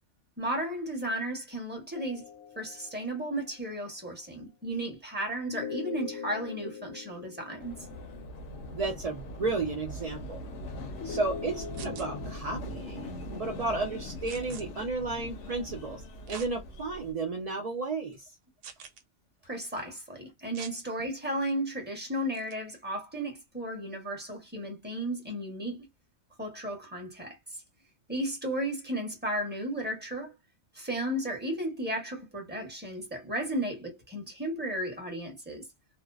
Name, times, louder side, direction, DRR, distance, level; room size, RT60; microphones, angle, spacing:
voice 1, 0.4-2.3 2.6-7.8 19.5-25.9 26.4-27.4 28.1-30.3 30.7-35.7, right 1 dB, 10° right, 0.8 m, -34 dB
sound 1, 1.9-3.5 5.5-8.6 11.0-12.4, left 6 dB, 90° left, 1.1 m, -41 dB
sound 2, 7.6-17.1, left 1 dB, 70° left, 0.9 m, -41 dB
voice 2, 8.7-10.4 11.0-18.3, right 3 dB, 65° right, 0.3 m, -33 dB
sound 3, 11.7-12.1 14.3-14.6 16.3-16.5 17.1-17.2 18.6-19.0 20.5-20.8 22.3-22.5, right 7 dB, 85° right, 1.0 m, -44 dB
2.5 x 2.1 x 2.3 m
omnidirectional pair, 1.4 m